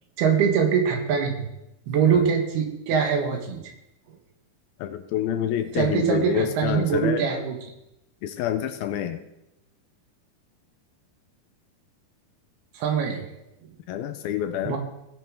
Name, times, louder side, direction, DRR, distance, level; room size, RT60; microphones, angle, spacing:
voice 1, 0.2-1.5 1.9-3.6 5.7-7.5 12.8-13.3 14.7-14.8, right 6 dB, 90° right, 2 dB, 3.5 m, -23 dB
voice 2, 4.8-7.3 8.2-9.2 13.9-14.8, left 10 dB, 80° left, 8 dB, 2.5 m, -27 dB
18.5 x 7.1 x 3.7 m, 0.89 s
omnidirectional pair, 4.5 m